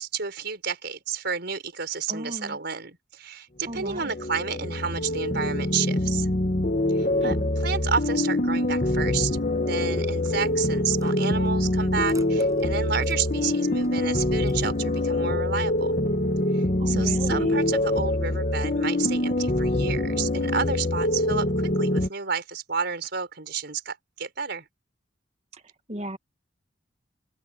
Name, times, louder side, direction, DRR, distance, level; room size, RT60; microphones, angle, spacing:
voice 1, 0.0-6.3 6.9-16.1 16.5-24.6, right 6 dB, 60° right, 5.2 m, -31 dB
voice 2, 2.1-2.6 3.7-4.1 7.0-7.5 16.8-17.6 25.9-26.2, right 1 dB, 35° right, 1.7 m, -35 dB
sound 1, 3.7-22.1, left 1 dB, 40° left, 1.3 m, -25 dB
sound 2, 9.9-15.1, right 2 dB, 15° right, 7.5 m, -52 dB
open air
head